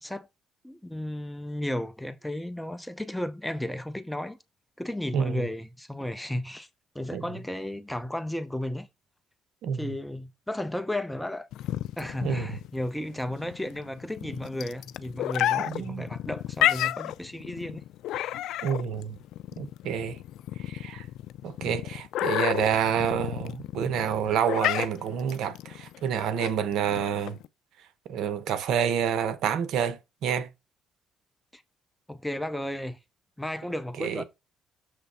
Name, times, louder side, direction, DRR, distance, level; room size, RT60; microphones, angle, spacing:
voice 1, 0.6-4.4 4.8-6.7 6.9-8.9 9.7-11.5 12.0-17.8 18.1-18.4 31.5-31.6 32.1-33.0 33.4-34.2, left 1 dB, 5° left, 0.7 m, -34 dB
voice 2, 5.1-5.4 7.1-7.2 9.6-9.9 12.2-12.5 15.7-16.1 18.6-19.2 19.6-20.2 20.6-21.1 21.4-27.4 28.1-30.5 34.0-34.2, right 8 dB, 75° right, 0.9 m, -28 dB
sound 1, 11.5-27.5, left 13 dB, 75° left, 0.4 m, -31 dB
7.0 x 3.4 x 5.5 m
cardioid pair, 100°, 0 cm